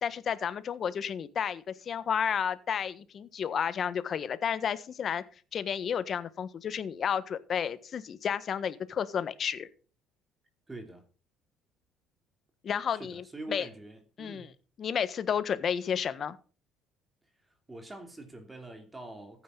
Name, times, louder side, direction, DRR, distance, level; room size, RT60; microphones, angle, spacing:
voice 1, 0.0-5.2 5.5-9.7 12.6-13.7 14.2-14.5 14.8-16.4, left 8 dB, 45° left, 1.4 m, -32 dB
voice 2, 10.7-11.0 13.0-14.5 17.7-19.4, right 2 dB, 15° right, 3.1 m, -44 dB
15.0 x 9.6 x 4.0 m
cardioid pair, 115°, 0 cm